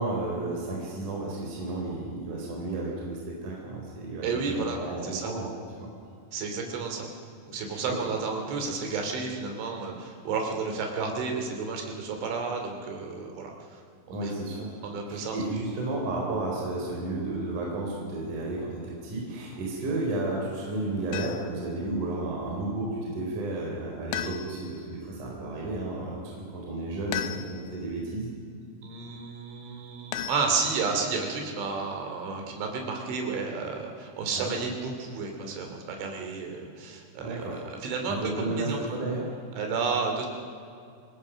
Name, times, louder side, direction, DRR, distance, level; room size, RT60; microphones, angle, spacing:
voice 1, 0.0-5.5 5.8-5.9 7.9-8.0 14.1-14.7 15.1-28.3 34.3-34.5 37.2-37.6 38.1-39.3, right 2 dB, 45° right, -2 dB, 5.4 m, -32 dB
voice 2, 4.2-5.3 6.3-7.1 7.5-13.8 14.1-14.3 14.8-15.4 24.2-24.3 28.8-38.8 39.6-40.3, right 4 dB, 85° right, 3 dB, 5.2 m, -32 dB
sound 1, 21.1-21.7 24.1-24.8 27.1-27.8 30.1-31.0, left 11 dB, 75° left, 2.7 m, -36 dB
26.5 x 20.5 x 6.4 m, 2.4 s
omnidirectional pair, 5.3 m